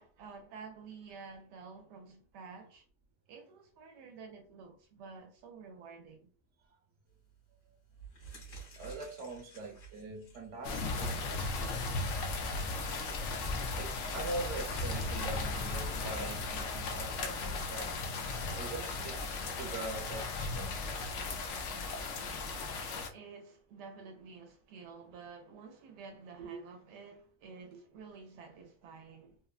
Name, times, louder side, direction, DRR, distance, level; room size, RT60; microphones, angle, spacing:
voice 1, 0.0-2.8 3.3-6.3 23.1-29.4, right 5 dB, 80° right, 1.2 m, -50 dB
sound 1, 7.1-7.4 7.9-14.4, right 4 dB, 60° left, 1.6 m, -53 dB
voice 2, 8.8-12.6 13.3-18.0 18.6-19.2 19.6-20.8 21.4-21.8 26.5-26.6, right 2 dB, 50° right, 1.1 m, -43 dB
sound 2, 10.6-23.1, left 3 dB, 80° left, 0.6 m, -36 dB
sound 3, 15.7-21.1, equal, 15° right, 0.8 m, -54 dB
3.6 x 2.1 x 2.4 m
omnidirectional pair, 1.8 m